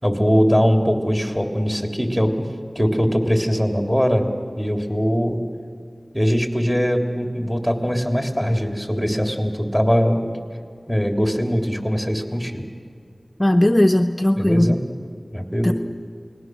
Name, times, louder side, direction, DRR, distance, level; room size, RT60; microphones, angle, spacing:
voice 1, 0.0-2.5 2.7-4.2 4.6-5.4 6.1-10.2 10.9-12.6 14.4-14.8 15.3-15.7, equal, 5° right, 3 dB, 3.2 m, -21 dB
voice 2, 13.4-14.8 15.6-15.7, left 1 dB, 30° left, 5 dB, 0.8 m, -17 dB
29.0 x 20.5 x 6.4 m, 2.2 s
wide cardioid pair, 45°, 0 cm